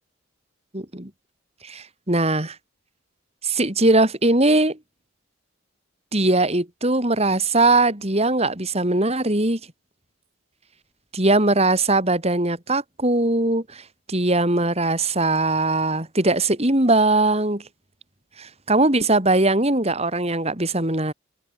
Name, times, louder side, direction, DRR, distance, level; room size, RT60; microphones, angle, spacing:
voice 1, 0.7-1.1 1.6-2.6 3.4-4.8 6.1-9.6 11.1-13.8 14.1-17.6 18.4-21.1, right 2 dB, 30° right, 3.5 m, -20 dB
open air
head